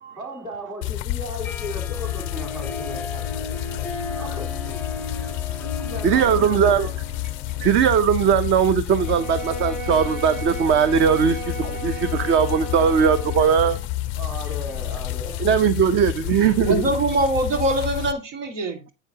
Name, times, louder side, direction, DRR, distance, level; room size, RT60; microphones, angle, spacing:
voice 1, 0.1-3.8 4.1-5.0 5.8-6.9 14.2-15.7, equal, 10° right, 3.7 m, -36 dB
sound 1, 0.8-18.1, left 16 dB, 35° left, 0.4 m, -30 dB
Harp, 1.4-8.3, left 2 dB, 5° left, 0.7 m, -36 dB
voice 2, 6.0-6.9 7.6-13.8 15.4-16.8, right 7 dB, 30° right, 0.6 m, -19 dB
Bowed string instrument, 8.9-13.8, right 2 dB, 50° right, 3.9 m, -35 dB
voice 3, 16.7-18.9, right 1 dB, 75° right, 2.1 m, -23 dB
10.5 x 7.7 x 2.8 m
supercardioid pair, 135°, 36 cm